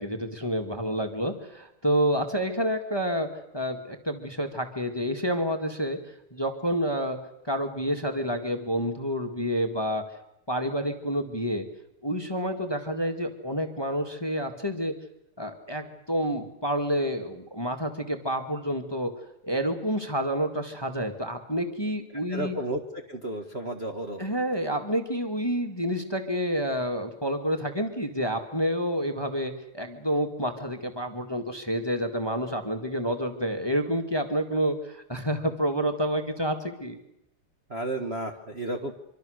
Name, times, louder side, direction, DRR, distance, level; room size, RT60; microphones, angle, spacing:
voice 1, 0.0-3.3 3.5-6.0 6.3-7.2 7.4-10.0 10.5-11.7 12.0-14.9 15.4-19.1 19.4-22.6 24.2-37.0, equal, 10° left, 5 dB, 1.8 m, -29 dB
voice 2, 22.3-22.8 23.1-24.2 37.7-38.9, right 1 dB, 30° right, 2 dB, 1.6 m, -32 dB
25.5 x 24.5 x 6.6 m, 0.82 s
omnidirectional pair, 2.4 m